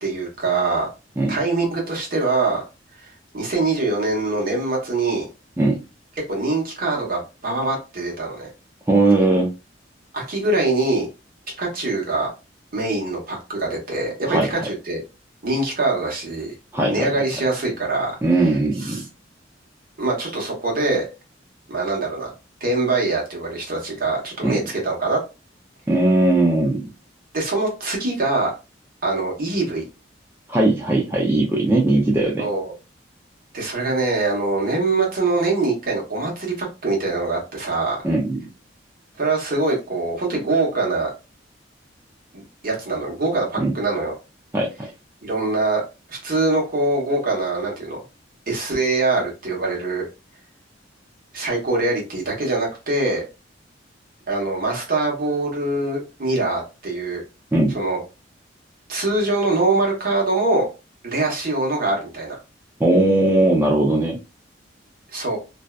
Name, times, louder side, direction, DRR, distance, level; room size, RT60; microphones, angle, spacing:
voice 1, 0.0-0.9 1.3-2.6 3.0-3.1 3.3-5.3 6.3-8.5 10.1-11.1 11.6-12.3 12.7-15.0 15.4-16.5 16.9-18.5 18.8-19.0 20.0-21.0 21.7-22.3 22.6-25.2 27.3-28.5 29.0-29.8 32.4-32.7 33.5-38.0 39.2-41.1 42.3-44.1 45.2-45.8 46.1-48.0 48.5-50.0 51.3-53.2 54.3-57.2 57.7-58.0 58.9-60.7 61.0-62.4 65.1-65.4, right 2 dB, 50° right, -1 dB, 1.0 m, -23 dB
voice 2, 8.9-9.5 14.3-14.6 16.7-17.1 18.2-19.0 24.4-24.6 25.9-26.9 30.5-32.5 38.0-38.4 43.6-43.7 44.5-44.7 57.5-57.8 62.8-64.2, right 2 dB, 15° right, -2 dB, 0.4 m, -19 dB
2.6 x 2.1 x 2.3 m, 0.29 s
head